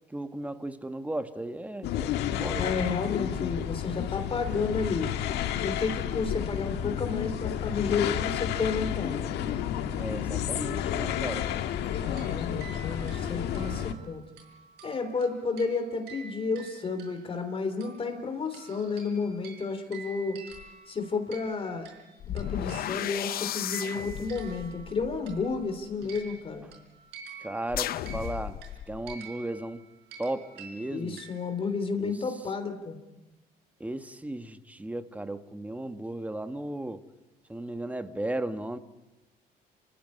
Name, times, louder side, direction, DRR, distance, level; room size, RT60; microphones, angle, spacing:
voice 1, 0.1-2.7 9.9-11.5 27.4-28.6 28.9-29.8 30.2-31.2 32.0-32.2 33.8-37.0 37.5-38.8, right 1 dB, 10° right, 9 dB, 1.4 m, -35 dB
sound 1, 1.8-13.9, left 10 dB, 80° left, 1.7 m, -31 dB
voice 2, 2.5-5.1 5.6-9.2 11.9-14.2 14.8-20.4 20.9-21.9 22.3-26.7 30.9-33.0, left 4 dB, 35° left, 7 dB, 3.3 m, -31 dB
sound 2, 12.0-17.5 17.8-25.7 26.0-31.7, right 6 dB, 85° right, 5.3 m, -48 dB
sound 3, 20.5-20.7 22.2-26.3 27.7-29.1, left 12 dB, 65° left, 0.8 m, -35 dB
26.5 x 14.5 x 9.7 m, 1.0 s
cardioid pair, 110°, 17 cm